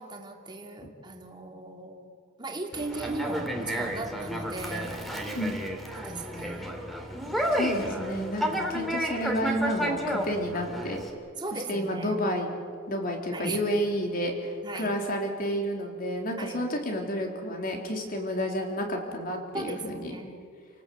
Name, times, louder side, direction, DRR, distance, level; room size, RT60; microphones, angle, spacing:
voice 1, 0.0-5.1 5.9-6.9 7.2-7.3 8.4-8.7 11.4-12.1 13.3-13.7 14.6-14.9 16.4-16.6 19.5-20.3, right 2 dB, 20° right, 2 dB, 2.5 m, -38 dB
Conversation, 2.7-11.1, equal, ahead, 2.6 m, -31 dB
voice 2, 7.5-11.0 11.5-12.5 12.9-20.1, equal, 45° left, 2 dB, 3.8 m, -30 dB
29.5 x 18.5 x 7.9 m, 2.1 s
head